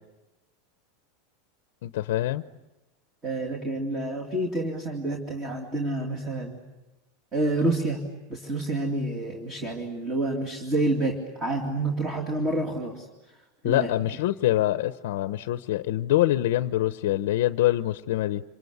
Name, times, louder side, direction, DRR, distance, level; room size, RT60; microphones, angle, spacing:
voice 1, 1.8-2.4 13.6-18.4, left 14 dB, 60° left, 11 dB, 0.8 m, -25 dB
voice 2, 3.2-6.6 7.3-8.0 8.3-13.1 13.6-13.9, right 2 dB, 15° right, 2 dB, 2.5 m, -28 dB
27.5 x 26.0 x 8.2 m, 1.1 s
supercardioid pair, 180°, 0 cm